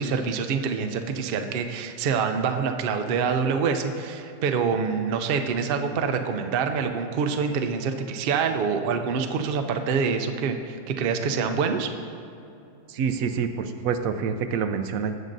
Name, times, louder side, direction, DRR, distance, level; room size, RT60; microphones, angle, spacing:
voice 1, 0.0-11.9, right 5 dB, 85° right, 6 dB, 0.5 m, -26 dB
voice 2, 12.9-15.1, right 6 dB, 70° right, 8 dB, 0.9 m, -27 dB
17.0 x 7.4 x 2.6 m, 2.6 s
omnidirectional pair, 1.7 m